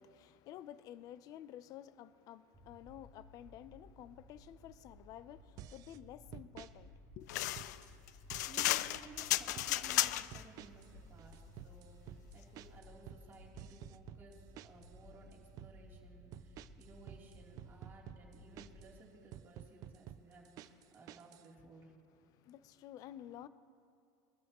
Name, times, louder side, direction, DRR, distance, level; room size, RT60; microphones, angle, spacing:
voice 1, 0.0-7.3 22.3-23.5, left 11 dB, 40° left, 0.6 m, -52 dB
sound 1, 2.5-18.9, left 1 dB, 5° left, 1.4 m, -58 dB
sound 2, 5.6-6.0 6.3-6.7 7.3-7.9 8.3-8.9 9.2-9.7 10.3-10.9 11.2-14.9 15.3-15.7 16.3-18.9 19.3-21.5, right 12 dB, 40° right, 0.5 m, -51 dB
sound 3, 7.3-10.4, left 15 dB, 85° left, 0.5 m, -34 dB
voice 2, 8.4-21.9, right 3 dB, 25° right, 3.3 m, -58 dB
23.5 x 13.5 x 3.1 m
supercardioid pair, 145°, 9 cm